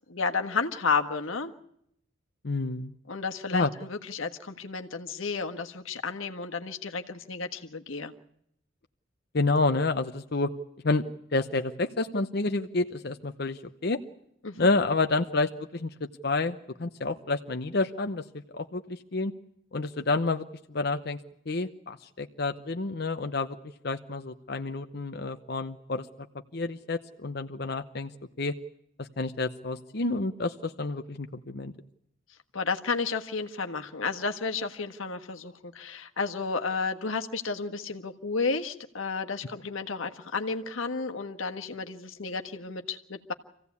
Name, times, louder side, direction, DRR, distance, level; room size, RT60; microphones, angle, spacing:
voice 1, 0.1-1.5 3.1-8.1 14.4-14.7 32.5-43.3, left 4 dB, 90° left, 5 dB, 1.5 m, -32 dB
voice 2, 2.4-2.9 3.5-3.7 9.3-10.5 10.8-11.0 11.3-14.0 14.6-15.9 16.2-18.2 18.5-19.3 19.7-21.2 21.5-23.6 23.8-26.1 26.5-28.1 28.4-28.5 29.0-31.7, left 3 dB, 50° left, 6 dB, 0.8 m, -29 dB
26.0 x 16.0 x 8.4 m, 0.76 s
head